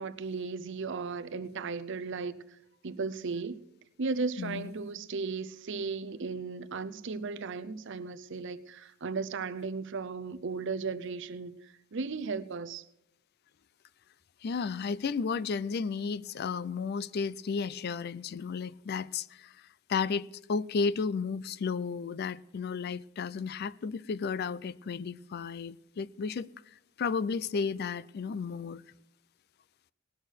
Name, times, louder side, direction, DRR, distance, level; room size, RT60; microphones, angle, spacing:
voice 1, 0.0-2.4 2.8-3.6 4.0-11.6 11.9-12.8, right 4 dB, 55° right, 0.6 m, -35 dB
voice 2, 4.4-4.7 14.4-26.5 27.0-28.8, left 5 dB, 45° left, 0.4 m, -33 dB
19.0 x 6.5 x 6.4 m
head